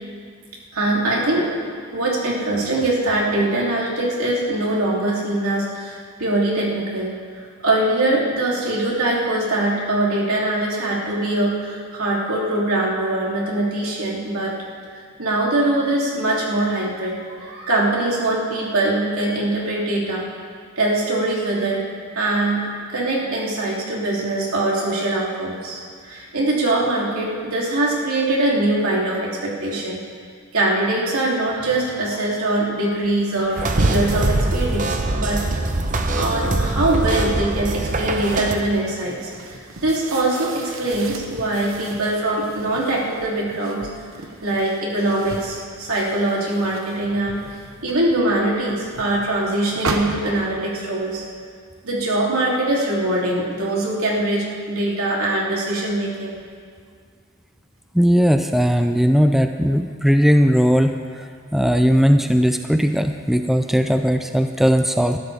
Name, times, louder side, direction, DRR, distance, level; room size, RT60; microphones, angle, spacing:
voice 1, 0.7-1.5 1.9-7.1 7.6-14.5 15.2-20.3 20.8-21.8 22.1-22.6 22.9-30.0 30.5-35.4 36.2-39.3 39.8-43.9 44.4-47.4 47.8-51.2 51.8-56.3, right 2 dB, 90° right, -4 dB, 3.1 m, -22 dB
sound 1, 32.8-50.5, right 2 dB, 70° right, 1.0 m, -33 dB
sound 2, 33.6-38.6, right 2 dB, 35° right, 0.8 m, -23 dB
voice 2, 57.9-65.2, equal, ahead, 6 dB, 0.4 m, -18 dB
20.0 x 12.5 x 3.5 m, 2.1 s
head